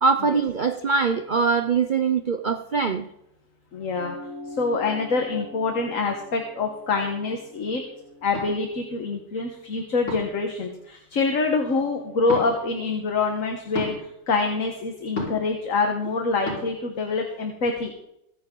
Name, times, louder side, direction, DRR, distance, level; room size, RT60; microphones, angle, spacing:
voice 1, 0.0-3.1, right 5 dB, 90° right, 7 dB, 0.4 m, -22 dB
voice 2, 3.7-4.2 4.5-7.8 8.2-17.9, left 4 dB, 50° left, 3 dB, 1.7 m, -26 dB
sound 1, 3.9-8.7, left 2 dB, 45° right, 2.3 m, -43 dB
sound 2, 8.3-8.5 10.1-10.4 12.3-12.5 13.7-13.9 15.2-15.5 16.5-16.6, left 2 dB, 75° left, 5.6 m, -30 dB
22.5 x 9.5 x 3.9 m, 0.80 s
omnidirectional pair, 1.8 m